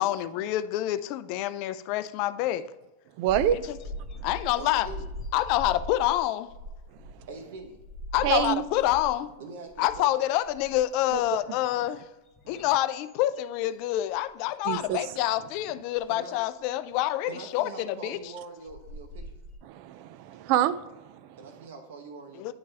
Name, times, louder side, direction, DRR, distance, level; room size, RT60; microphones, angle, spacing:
voice 1, 0.0-2.7 3.5-3.8 4.2-4.9 5.3-6.5 8.1-9.3 9.8-12.0 12.5-18.2 22.4-22.5, left 14 dB, 55° left, 0.4 m, -27 dB
voice 2, 3.2-3.6 8.2-8.6 11.1-11.2 12.5-12.6 14.6-15.1 19.6-21.4, right 11 dB, 55° right, 0.4 m, -27 dB
sound 1, 3.3-9.3 9.7-10.1 10.4-11.4 12.0-14.3 14.7-14.9 16.0-16.1 18.2-18.3 18.7-19.6, left 1 dB, 30° left, 1.1 m, -41 dB
voice 3, 4.6-5.1 7.3-7.8 9.4-10.1 16.1-16.4 17.3-19.4 21.4-22.5, right 3 dB, 70° right, 1.0 m, -43 dB
9.7 x 3.3 x 3.4 m
hypercardioid pair, 115°, 0 cm